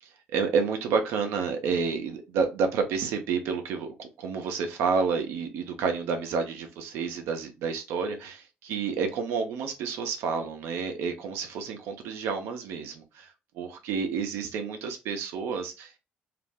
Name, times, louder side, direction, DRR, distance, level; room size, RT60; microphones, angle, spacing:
voice 1, 0.0-16.0, right 5 dB, 80° right, 0.6 m, -30 dB
2.4 x 2.0 x 3.4 m
supercardioid pair, 60°, 4 cm